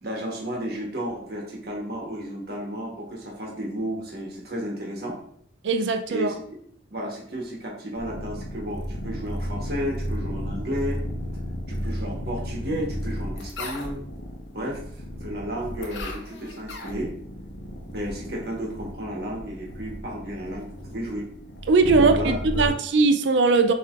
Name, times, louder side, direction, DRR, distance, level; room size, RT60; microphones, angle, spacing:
voice 1, 0.0-5.2 6.1-6.3 6.9-11.0 11.7-14.0 14.5-17.1 17.9-21.3 21.9-22.8, equal, 55° right, -2 dB, 1.3 m, -33 dB
voice 2, 5.6-6.3 21.7-23.7, right 4 dB, 75° right, 7 dB, 0.5 m, -20 dB
sound 1, 8.0-22.7, equal, 90° left, 0.7 m, -34 dB
6.5 x 3.1 x 2.4 m, 0.63 s
head